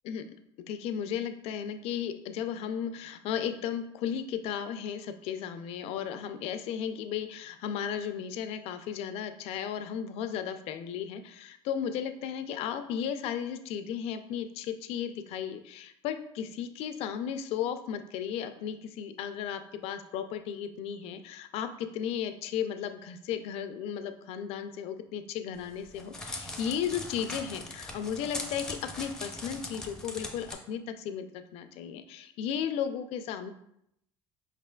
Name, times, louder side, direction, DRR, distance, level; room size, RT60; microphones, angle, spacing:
voice 1, 0.0-0.3 0.7-31.3 31.5-33.5, left 8 dB, 70° left, 9 dB, 0.4 m, -35 dB
Crackle, 25.6-30.5, left 1 dB, 5° left, 0.6 m, -40 dB
4.8 x 3.3 x 2.2 m, 0.76 s
cardioid pair, 105°, 11 cm